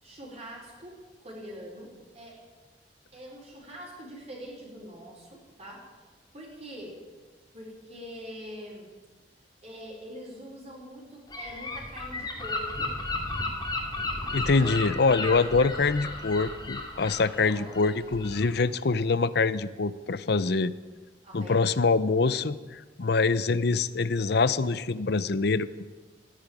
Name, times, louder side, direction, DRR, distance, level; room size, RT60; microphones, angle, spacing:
voice 1, 0.0-1.9 2.1-2.4 3.1-5.8 6.3-7.0 7.5-8.9 9.6-13.0 14.3-14.9 17.4-17.8 21.2-21.7, equal, 35° right, -3 dB, 4.3 m, -44 dB
Gull seagull / Wind, 11.3-18.6, left 2 dB, 25° left, 2.6 m, -34 dB
voice 2, 14.3-20.7 21.3-25.8, left 4 dB, 65° left, 16 dB, 0.7 m, -25 dB
14.5 x 10.0 x 10.0 m, 1.3 s
head